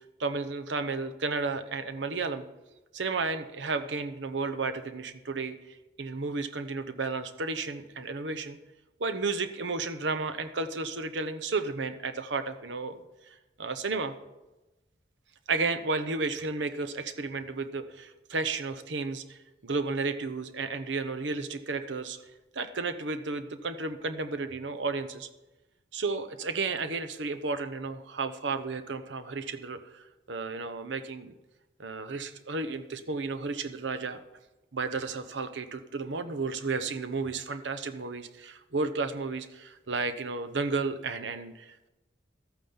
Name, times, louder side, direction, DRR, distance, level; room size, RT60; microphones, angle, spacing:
voice 1, 0.2-2.5 2.9-5.6 6.0-8.6 9.0-13.0 13.6-14.1 15.5-22.2 22.5-25.3 25.9-31.3 31.8-34.2 34.7-41.9, right 3 dB, 85° right, 9 dB, 0.9 m, -33 dB
13.5 x 9.0 x 5.6 m, 1.0 s
head